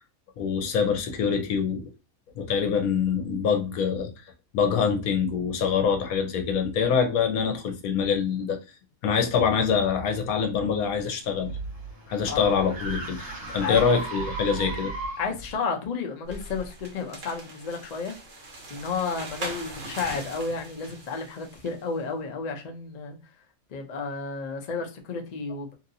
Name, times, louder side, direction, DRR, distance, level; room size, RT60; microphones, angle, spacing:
voice 1, 0.4-1.8 2.4-4.1 4.5-8.6 9.0-11.5 12.1-14.9, left 6 dB, 80° left, 1.2 m, -25 dB
sound 1, 11.0-15.5, right 2 dB, 35° right, 1.4 m, -36 dB
voice 2, 15.2-18.1 18.7-23.2 23.7-25.7, left 5 dB, 55° left, 0.4 m, -32 dB
sound 2, 16.2-21.8, right 2 dB, 50° right, 1.0 m, -41 dB
2.8 x 2.7 x 2.6 m
omnidirectional pair, 1.5 m